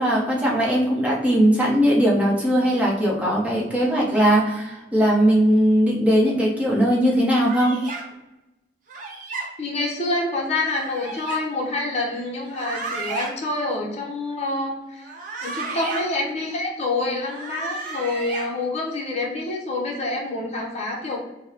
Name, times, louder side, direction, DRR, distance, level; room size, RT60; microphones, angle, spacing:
voice 1, 0.0-7.8, equal, 10° right, -4 dB, 0.8 m, -19 dB
sound 1, 7.4-8.0 8.9-9.4 10.6-11.4 12.4-13.3 15.0-16.0 17.2-18.5, right 3 dB, 50° right, 0.7 m, -33 dB
voice 2, 9.6-15.1 15.4-21.2, left 2 dB, 40° left, -1 dB, 0.7 m, -27 dB
4.5 x 2.1 x 2.8 m, 0.99 s
head